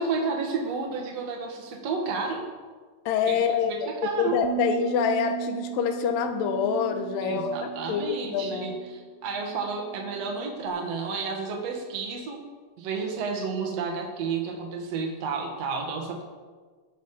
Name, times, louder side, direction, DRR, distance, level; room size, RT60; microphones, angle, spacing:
voice 1, 0.0-2.5 3.3-4.4 7.2-12.4 12.8-16.2, right 4 dB, 50° right, 1 dB, 2.1 m, -31 dB
voice 2, 3.1-8.7, left 7 dB, 85° left, 7 dB, 2.0 m, -26 dB
sound 1, 4.4-10.7, right 20 dB, 80° right, 2.5 m, -37 dB
19.5 x 6.7 x 5.0 m, 1.5 s
omnidirectional pair, 5.1 m